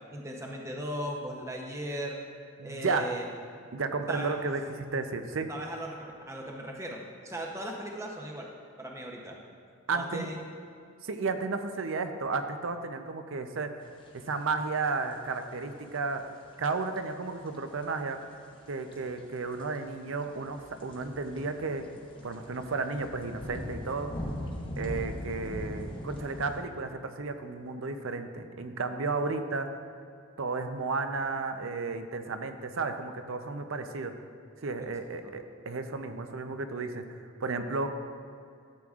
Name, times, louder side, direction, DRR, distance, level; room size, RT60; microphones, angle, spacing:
voice 1, 0.1-2.2 2.6-3.2 4.1-4.3 5.5-8.5 8.8-9.4 9.9-10.4 35.2-35.3, equal, 15° right, 0 dB, 0.7 m, -37 dB
voice 2, 2.6-3.1 3.7-5.5 9.9-10.3 11.0-13.8 14.1-16.3 16.6-18.2 18.7-21.9 22.2-24.1 24.8-29.7 30.4-34.1 34.6-37.9, right 4 dB, 60° right, 8 dB, 0.5 m, -33 dB
sound 1, 13.9-26.6, equal, 20° left, 0.9 m, -41 dB
13.0 x 7.7 x 2.4 m, 2.4 s
head